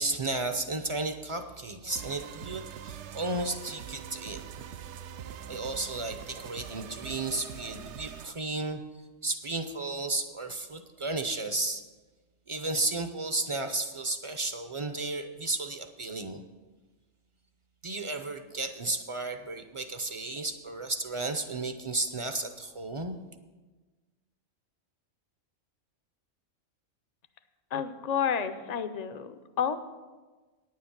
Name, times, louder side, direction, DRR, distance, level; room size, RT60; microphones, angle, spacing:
voice 1, 0.0-4.4 5.5-8.8 9.2-11.8 12.5-16.4 17.8-23.2, right 2 dB, 35° right, 7 dB, 0.5 m, -33 dB
sound 1, 1.9-8.3, right 8 dB, 70° right, 0.8 m, -43 dB
voice 2, 27.7-29.8, left 7 dB, 45° left, 10 dB, 0.5 m, -30 dB
9.6 x 7.7 x 7.2 m, 1.3 s
omnidirectional pair, 1.3 m